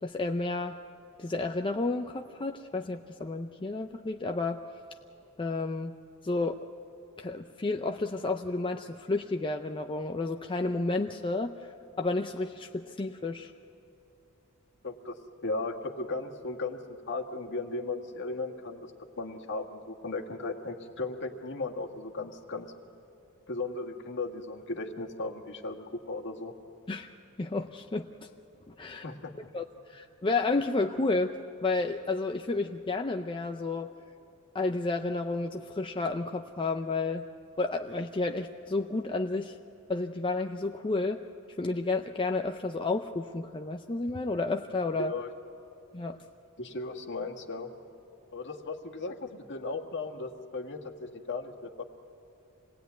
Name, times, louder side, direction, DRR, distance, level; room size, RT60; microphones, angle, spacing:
voice 1, 0.0-0.8 1.2-4.6 5.4-6.0 6.2-6.6 7.2-11.6 12.0-13.5 26.9-27.1 27.4-28.3 28.7-29.1 29.5-31.3 31.6-33.9 34.5-37.3 37.6-39.5 39.9-41.2 41.6-45.1 45.9-46.2, left 3 dB, 20° left, 4 dB, 0.5 m, -31 dB
voice 2, 14.8-18.9 19.2-22.7 23.5-26.5 29.0-29.3 45.0-45.3 46.6-47.7 48.3-51.8, left 3 dB, 55° left, 3 dB, 1.7 m, -36 dB
26.5 x 19.0 x 9.3 m, 2.9 s
head